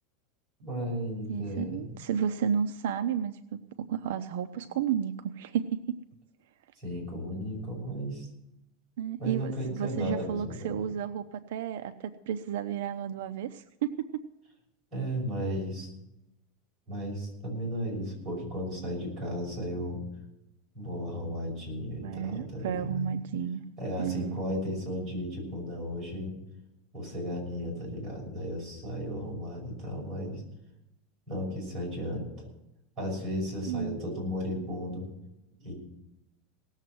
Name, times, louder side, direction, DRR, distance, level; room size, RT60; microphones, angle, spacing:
voice 1, 0.6-1.9 6.8-8.3 9.2-10.7 14.9-15.9 16.9-20.0 20.7-23.1 23.8-26.3 26.9-30.4 31.3-32.5 33.0-35.1 35.6-35.7, equal, 15° right, -4 dB, 6.1 m, -34 dB
voice 2, 1.3-6.0 9.0-14.2 22.0-23.6 24.0-24.4 33.7-34.0, right 8 dB, 75° right, 8 dB, 0.7 m, -32 dB
18.0 x 7.3 x 7.7 m, 0.88 s
supercardioid pair, 180°, 0 cm